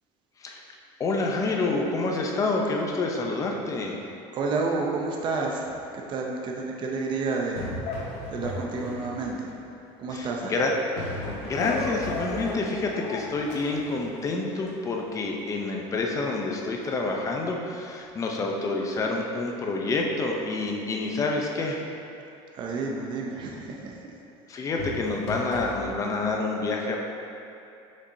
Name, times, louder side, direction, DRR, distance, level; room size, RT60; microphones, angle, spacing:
voice 1, 1.0-4.0 10.1-10.7 11.4-21.8 24.5-27.0, left 3 dB, 25° left, 0 dB, 0.6 m, -28 dB
voice 2, 4.3-9.5 10.0-10.6 22.5-24.1, right 3 dB, 40° right, -1 dB, 0.6 m, -30 dB
sound 1, 6.1-6.2 7.8-8.8 11.6-13.3, left 4 dB, 65° left, 0.6 m, -34 dB
sound 2, 7.4-9.6 10.1-15.1 16.8-17.1 24.8-25.7, left 2 dB, 90° left, 1.2 m, -37 dB
6.7 x 5.3 x 2.7 m, 2.7 s
cardioid pair, 145°, 13 cm